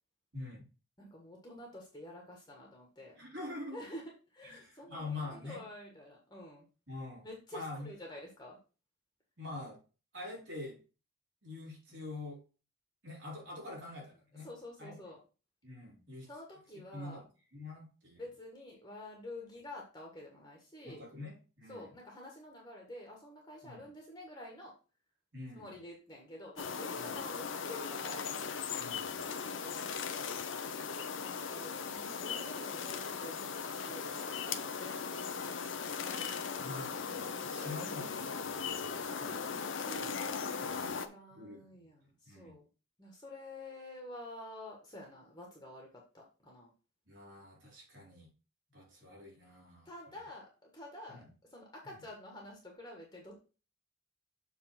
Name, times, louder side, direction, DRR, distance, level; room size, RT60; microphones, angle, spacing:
voice 1, 0.3-0.6 3.2-3.8 4.4-5.6 6.9-7.3 7.5-7.9 9.4-9.8 10.1-10.8 11.4-12.4 13.0-14.5 14.8-15.0 15.6-16.3 16.9-17.2 17.5-18.2 20.8-21.9 23.6-23.8 25.3-25.7 27.0-27.2 28.8-29.2 34.0-34.1 36.0-39.5 40.0-40.2 40.6-41.0 41.3-41.9 42.3-42.6 47.1-48.3 48.7-49.9 51.1-51.3, left 2 dB, 55° right, -3 dB, 3.9 m, -45 dB
voice 2, 1.0-3.1 3.7-6.7 7.2-8.6 14.3-15.2 16.3-17.2 18.2-21.0 21.7-24.7 25.5-28.2 29.4-29.8 30.1-35.1 39.4-39.9 40.8-42.7 43.0-45.9 46.1-46.7 49.8-53.4, left 1 dB, 20° left, -1 dB, 1.5 m, -49 dB
sound 1, 26.6-41.1, left 6 dB, 65° left, 0.8 m, -38 dB
7.1 x 3.6 x 5.8 m, 0.34 s
head